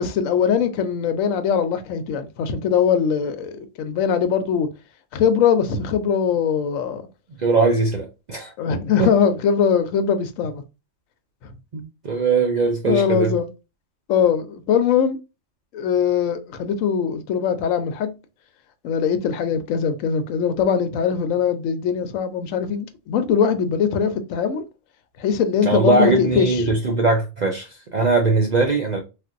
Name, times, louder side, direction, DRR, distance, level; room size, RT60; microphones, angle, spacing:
voice 1, 0.0-4.7 5.1-7.0 8.6-10.6 12.9-13.5 14.1-15.2 15.7-18.1 18.8-24.6 25.2-26.8, left 7 dB, 85° left, 1.0 m, -21 dB
voice 2, 7.4-8.5 9.0-9.1 11.7-13.4 25.6-29.0, right 3 dB, 60° right, 0.4 m, -20 dB
3.4 x 2.5 x 2.5 m
omnidirectional pair, 1.4 m